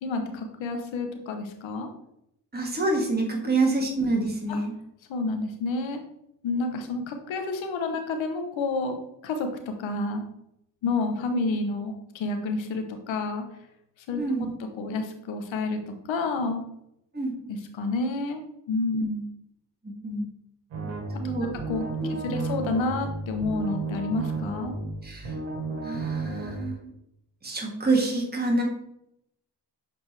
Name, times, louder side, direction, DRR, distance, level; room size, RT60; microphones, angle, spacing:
voice 1, 0.0-1.9 3.4-3.6 4.5-4.6 5.1-6.0 6.4-10.2 10.8-13.4 14.1-14.5 14.7-15.8 16.1-16.6 17.5-18.4 18.7-19.3 21.2-21.8 22.1-24.7, left 3 dB, 90° left, 5 dB, 1.0 m, -29 dB
voice 2, 2.5-4.7 14.2-14.5 17.1-17.3 19.8-20.3 21.2-21.5 22.0-22.4 25.0-25.3 25.8-26.9 27.4-28.6, right 2 dB, 20° right, 0 dB, 2.0 m, -27 dB
sound 1, 20.7-26.7, right 3 dB, 90° right, 1.5 m, -33 dB
7.4 x 4.3 x 3.3 m, 0.79 s
supercardioid pair, 40°, 45 cm